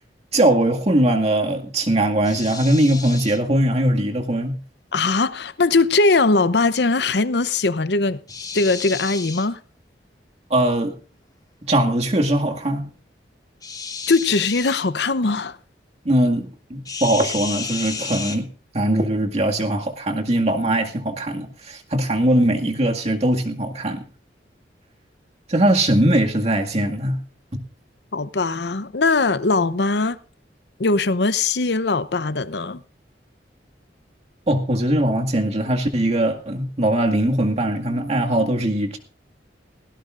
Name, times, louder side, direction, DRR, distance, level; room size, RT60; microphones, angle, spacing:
voice 1, 0.3-4.6 10.5-11.0 11.7-12.9 16.0-18.5 18.7-24.0 25.5-27.2 34.5-39.0, right 1 dB, 40° right, 2.1 m, -20 dB
sound 1, 2.2-3.4 8.3-9.5 13.6-14.9 16.9-18.4, left 5 dB, 20° left, 1.3 m, -32 dB
voice 2, 4.9-8.2 8.5-9.6 14.1-15.6 28.1-30.2 30.8-32.8, left 3 dB, 70° left, 0.8 m, -20 dB
18.5 x 17.0 x 2.5 m
head